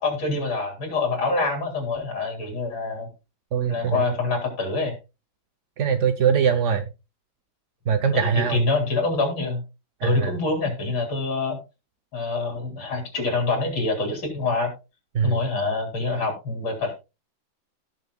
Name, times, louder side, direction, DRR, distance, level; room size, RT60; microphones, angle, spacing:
voice 1, 0.0-3.1 3.7-4.9 8.1-9.6 10.0-11.6 12.1-14.7 15.2-17.0, left 3 dB, 75° left, 2 dB, 4.3 m, -25 dB
voice 2, 3.5-4.2 5.8-6.9 7.9-8.6 10.0-10.3 15.1-15.4, right 7 dB, 60° right, 7 dB, 0.8 m, -22 dB
17.0 x 6.7 x 2.3 m, 0.27 s
omnidirectional pair, 2.2 m